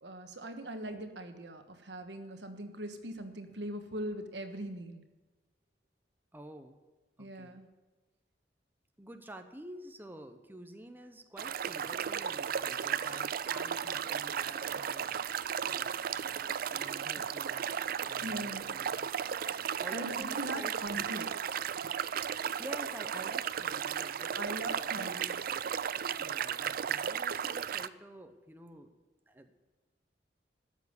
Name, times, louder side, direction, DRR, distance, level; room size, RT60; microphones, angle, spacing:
voice 1, 0.0-5.0 7.2-7.7 12.8-12.9 18.2-18.7 19.9-21.3 24.3-25.3, right 1 dB, 75° right, 7 dB, 1.3 m, -40 dB
voice 2, 6.3-6.8 7.2-7.6 9.0-15.1 15.6-16.3 16.7-17.7 18.0-19.0 19.8-20.7 22.3-25.4 26.2-29.0 29.3-29.6, right 1 dB, 10° right, 6 dB, 0.8 m, -49 dB
sound 1, 11.4-27.9, right 8 dB, 55° right, 0.4 m, -35 dB
13.5 x 7.3 x 9.7 m, 1.2 s
head